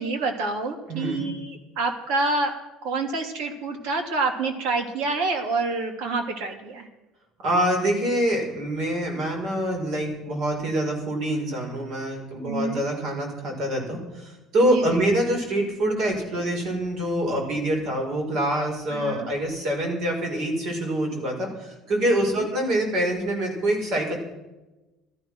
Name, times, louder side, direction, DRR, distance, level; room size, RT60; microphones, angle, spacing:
voice 1, 0.0-6.9 12.4-12.8 14.6-15.0 18.9-19.3 22.2-22.3, right 3 dB, 75° right, 5 dB, 2.9 m, -27 dB
voice 2, 0.9-1.3 7.4-24.2, right 1 dB, 50° right, 2 dB, 5.3 m, -25 dB
14.5 x 13.5 x 6.2 m, 1.1 s
cardioid pair, 170°, 0 cm